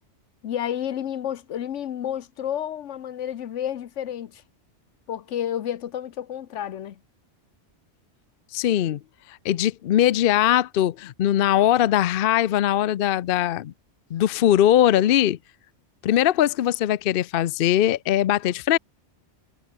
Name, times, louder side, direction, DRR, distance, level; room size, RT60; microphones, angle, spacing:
voice 1, 0.4-4.4 5.1-7.0, left 10 dB, 80° left, 1.1 m, -30 dB
voice 2, 8.5-9.0 9.4-13.7 14.1-15.4 16.0-18.8, left 12 dB, 60° left, 0.7 m, -20 dB
omnidirectional pair, 1.2 m